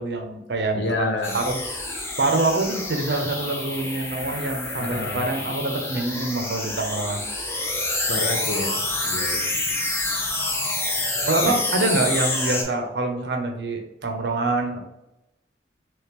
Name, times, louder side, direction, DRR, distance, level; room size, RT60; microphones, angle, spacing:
voice 1, 0.0-1.6 2.2-7.2 11.2-14.8, right 2 dB, 70° right, 4 dB, 0.6 m, -25 dB
voice 2, 0.7-1.4 4.8-5.3 8.1-8.8 9.0-9.4 11.4-11.5, left 3 dB, 75° left, 4 dB, 0.7 m, -28 dB
sound 1, 1.2-12.6, left 2 dB, 15° left, 0.6 m, -28 dB
3.6 x 3.1 x 3.0 m, 0.92 s
head